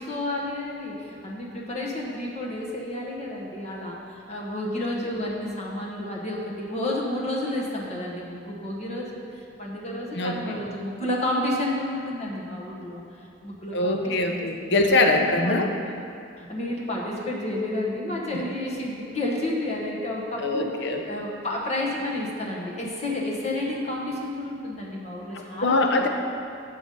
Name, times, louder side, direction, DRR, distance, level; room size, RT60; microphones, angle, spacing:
voice 1, 0.0-14.5 14.8-15.6 16.4-25.9, left 1 dB, 35° left, -3 dB, 1.1 m, -31 dB
voice 2, 10.1-10.6 13.7-15.7 20.4-21.0 25.3-26.1, left 2 dB, 60° left, 4 dB, 0.8 m, -23 dB
7.6 x 7.0 x 5.4 m, 2.5 s
head